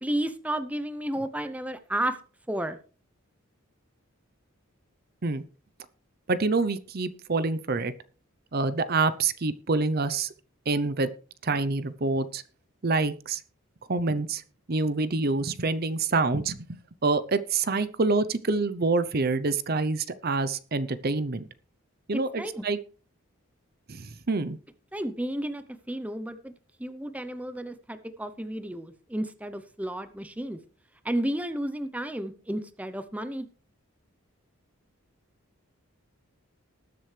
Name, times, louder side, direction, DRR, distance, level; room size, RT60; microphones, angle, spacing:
voice 1, 0.0-2.2 2.5-2.8 22.1-22.6 24.9-26.5 26.8-30.6 31.0-33.5, right 1 dB, 5° right, 10 dB, 0.7 m, -32 dB
voice 2, 6.3-7.9 8.5-10.3 10.7-11.1 11.4-12.4 12.8-13.4 13.9-14.4 14.7-21.4 22.1-22.8 23.9-24.6, right 3 dB, 45° right, 14 dB, 0.7 m, -26 dB
19.5 x 7.6 x 3.3 m, 0.38 s
head